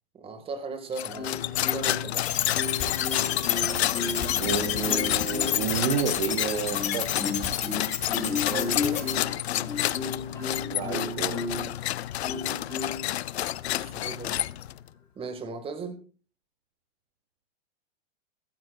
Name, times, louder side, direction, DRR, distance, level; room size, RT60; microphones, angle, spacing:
voice 1, 0.1-2.3 8.2-9.1 13.8-14.4 15.2-16.0, right 4 dB, 15° right, 8 dB, 2.1 m, -37 dB
sound 1, 0.9-14.9, left 13 dB, 80° left, 0.7 m, -30 dB
Marimba xylophone, 1.1-2.1 2.5-4.4 4.8-5.7 6.3-11.7 12.2-13.1 13.6-13.9, left 4 dB, 10° left, 6.6 m, -34 dB
sound 2, 2.2-9.1, left 10 dB, 25° left, 1.7 m, -30 dB
voice 2, 4.4-7.1 10.7-11.4, right 6 dB, 60° right, 4 dB, 2.8 m, -30 dB
15.0 x 14.5 x 2.5 m, 0.36 s
hypercardioid pair, 145°, 31 cm